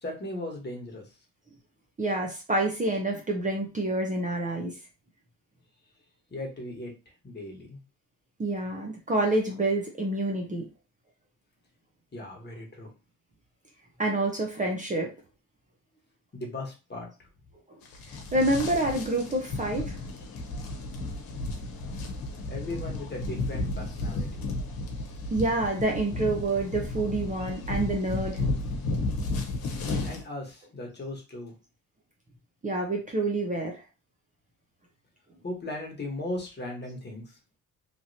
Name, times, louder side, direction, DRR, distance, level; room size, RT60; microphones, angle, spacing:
voice 1, 0.0-1.2 6.3-6.9 7.2-7.8 12.1-12.9 16.3-17.3 22.5-24.5 30.0-31.5 35.4-37.4, left 2 dB, 30° left, 0 dB, 1.3 m, -37 dB
voice 2, 2.0-4.7 8.4-10.7 14.0-15.1 18.3-20.0 25.3-28.4 32.6-33.8, right 2 dB, 20° right, 1 dB, 0.7 m, -27 dB
sound 1, 17.8-30.2, left 2 dB, 80° left, 1.0 m, -33 dB
3.1 x 2.7 x 2.8 m, 0.31 s
cardioid pair, 90°, 35 cm